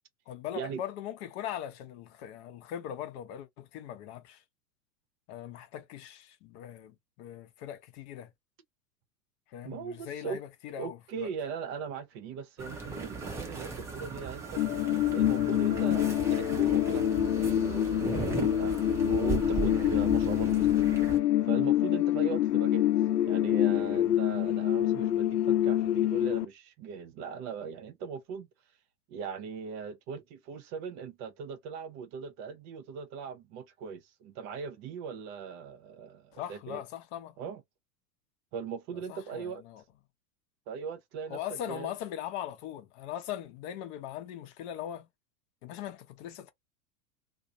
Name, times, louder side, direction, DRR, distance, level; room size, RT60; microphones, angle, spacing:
voice 1, 0.3-4.4 5.3-8.3 9.5-11.3 36.3-37.3 39.1-39.8 41.3-45.1 45.6-46.5, left 11 dB, 45° left, 0.7 m, -40 dB
voice 2, 9.6-10.4 10.8-14.6 15.1-18.7 19.0-21.0 21.4-23.0 23.2-28.5 29.1-36.8 37.4-37.6 38.5-39.6 40.7-41.9, right 6 dB, 40° right, 0.7 m, -39 dB
sound 1, 12.6-21.2, right 4 dB, 5° right, 0.4 m, -37 dB
sound 2, 14.6-26.5, left 12 dB, 85° left, 0.6 m, -26 dB
2.4 x 2.1 x 2.8 m
hypercardioid pair, 95°, 47 cm